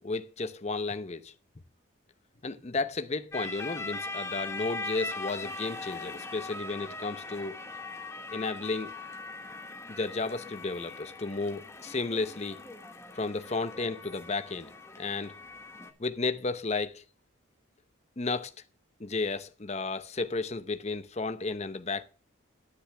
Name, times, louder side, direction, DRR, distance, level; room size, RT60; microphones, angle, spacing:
voice 1, 0.0-1.3 2.4-7.6 8.3-8.9 9.9-12.6 13.1-15.4 16.0-17.0 18.2-18.5 19.0-22.0, left 3 dB, 30° left, 0.7 m, -33 dB
sound 1, 3.3-15.9, left 3 dB, 15° left, 1.1 m, -40 dB
10.0 x 9.5 x 3.3 m
head